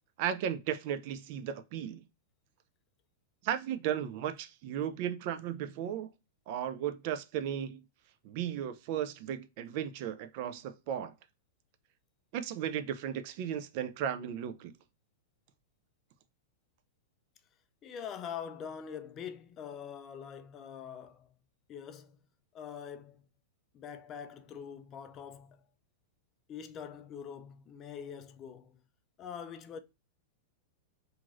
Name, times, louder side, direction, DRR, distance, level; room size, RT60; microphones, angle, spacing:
voice 1, 0.2-2.0 3.4-6.1 6.5-7.8 8.2-11.1 12.3-14.7, right 9 dB, 50° right, 0.4 m, -35 dB
voice 2, 17.8-21.3 21.7-22.2 22.5-23.3 23.7-25.6 26.5-28.8 29.2-29.8, left 7 dB, 30° left, 0.3 m, -44 dB
2.9 x 2.5 x 2.5 m
hypercardioid pair, 130°, 0 cm